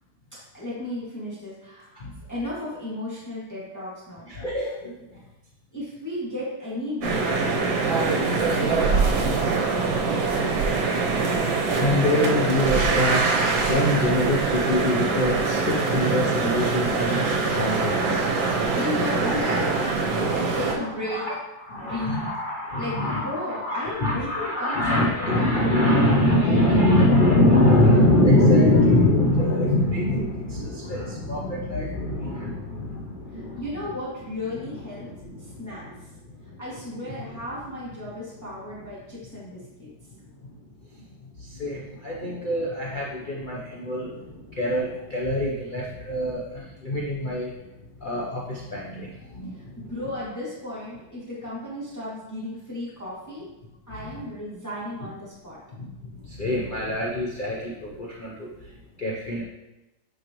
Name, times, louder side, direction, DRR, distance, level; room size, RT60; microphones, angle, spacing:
voice 1, 0.5-1.9 2.3-4.3 5.7-10.9 18.7-20.0 20.3-21.2 21.8-22.2 22.7-25.6 26.0-26.1 26.4-27.0 33.3-35.1 35.4-35.9 36.6-39.9 49.8-53.5 53.9-55.6, left 1 dB, 10° left, -8 dB, 1.8 m, -34 dB
voice 2, 4.3-5.2 11.4-18.9 19.3-19.4 19.6-19.8 20.1-33.6 34.7-36.1 36.3-36.6 37.0-37.1 40.4-40.7 41.4-47.7 48.0-49.9 54.0-54.3 55.7-58.7 59.0-59.4, left 1 dB, 70° left, -4 dB, 0.4 m, -24 dB
sound 1, 7.0-20.8, right 4 dB, 90° right, 1.7 m, -23 dB
8.2 x 4.8 x 3.0 m, 0.98 s
omnidirectional pair, 2.1 m